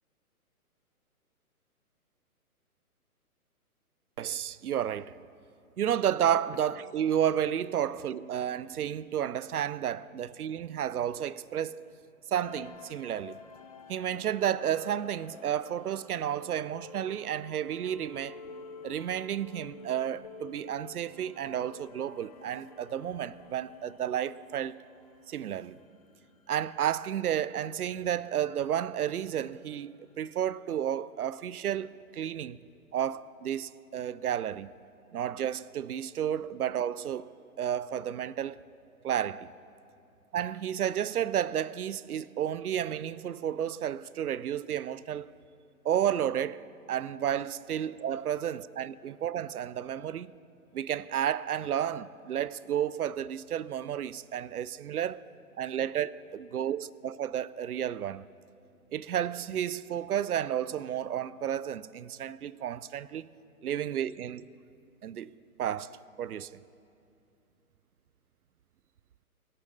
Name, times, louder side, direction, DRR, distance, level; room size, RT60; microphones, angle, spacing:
voice 1, 4.2-5.2 5.8-11.9 12.3-13.4 13.9-18.4 18.8-24.8 25.3-25.8 26.5-32.6 32.9-34.7 35.1-38.6 39.0-39.5 40.3-45.3 45.8-50.3 50.7-55.2 55.6-56.1 56.5-58.3 58.9-63.3 63.6-64.5 65.0-65.3 65.6-66.5, right 10 dB, 80° right, 0.5 m, -32 dB
sound 1, 12.4-26.5, left 4 dB, 25° left, 0.5 m, -50 dB
16.5 x 6.7 x 7.4 m
figure-of-eight pair, 130°, 45 cm